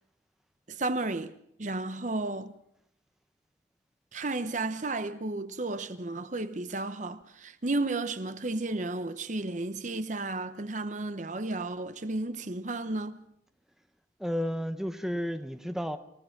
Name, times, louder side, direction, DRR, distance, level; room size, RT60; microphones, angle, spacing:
voice 1, 0.7-1.3 1.6-2.5 4.1-13.2, right 2 dB, 40° right, 0.9 m, -33 dB
voice 2, 14.2-16.0, equal, ahead, 0.8 m, -32 dB
28.0 x 15.5 x 5.9 m
head